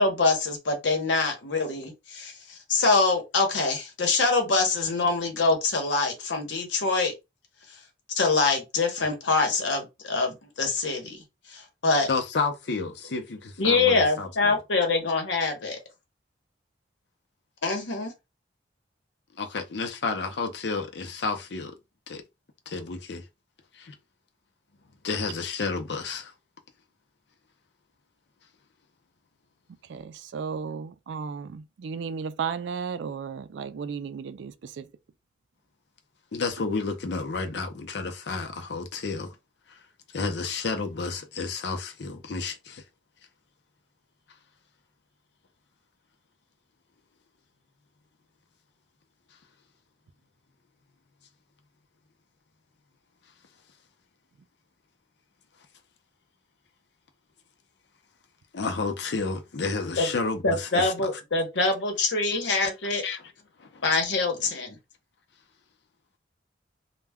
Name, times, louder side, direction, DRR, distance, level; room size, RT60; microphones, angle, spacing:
voice 1, 0.0-7.1 7.7-7.8 8.2-12.1 13.6-15.8 17.6-18.1 60.0-60.1 60.4-63.0 63.8-64.8, left 3 dB, 85° left, 0.9 m, -25 dB
voice 2, 12.1-14.6 19.4-21.7 22.1-22.2 22.7-23.2 23.8-23.9 25.0-26.3 36.3-39.3 39.7-39.8 40.1-42.8 58.5-61.1 62.3-62.4 63.0-63.2 63.6-63.8, left 4 dB, 70° left, 0.6 m, -31 dB
voice 3, 29.9-34.9, right 6 dB, 80° right, 0.3 m, -34 dB
2.2 x 2.2 x 3.4 m
head